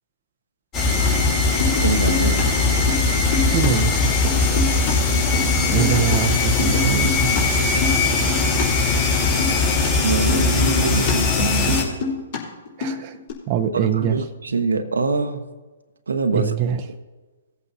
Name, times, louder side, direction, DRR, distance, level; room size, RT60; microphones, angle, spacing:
sound 1, 0.7-11.8, left 3 dB, 30° left, 3.3 m, -20 dB
sound 2, 1.6-2.4 2.7-3.7 3.9-6.2 6.4-8.6 8.9-12.4 12.7-13.3, left 4 dB, 45° left, 3.3 m, -28 dB
voice 1, 1.8-2.5 10.0-11.3 11.7-11.9 13.7-15.4 16.1-16.5, right 3 dB, 85° right, 7 dB, 1.0 m, -24 dB
voice 2, 3.5-3.9 5.7-7.3 12.8-13.2 13.5-14.2 16.3-16.8, right 10 dB, 35° right, 4 dB, 0.7 m, -23 dB
18.0 x 8.2 x 2.8 m, 1.3 s
hypercardioid pair, 135°, 0 cm